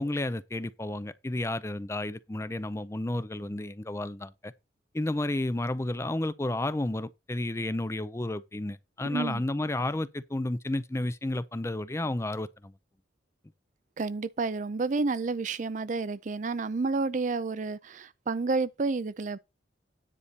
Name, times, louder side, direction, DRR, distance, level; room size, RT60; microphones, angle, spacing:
voice 1, 0.0-4.5 4.9-12.7, left 1 dB, 15° left, 0.4 m, -32 dB
voice 2, 9.1-9.4 14.0-19.4, right 3 dB, 45° right, 0.5 m, -30 dB
9.9 x 4.2 x 6.7 m
head